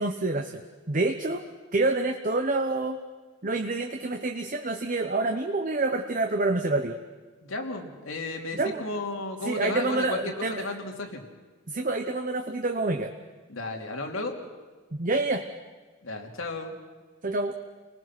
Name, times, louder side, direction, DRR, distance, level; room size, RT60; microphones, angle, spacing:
voice 1, 0.0-1.4 1.7-3.0 3.4-7.0 8.5-8.8 9.4-10.7 11.7-13.1 14.9-15.4 17.2-17.6, right 2 dB, 40° right, 5 dB, 1.0 m, -27 dB
voice 2, 7.4-11.2 13.5-14.4 16.0-16.8, left 2 dB, 80° left, 2 dB, 2.9 m, -34 dB
30.0 x 19.5 x 6.1 m, 1.3 s
head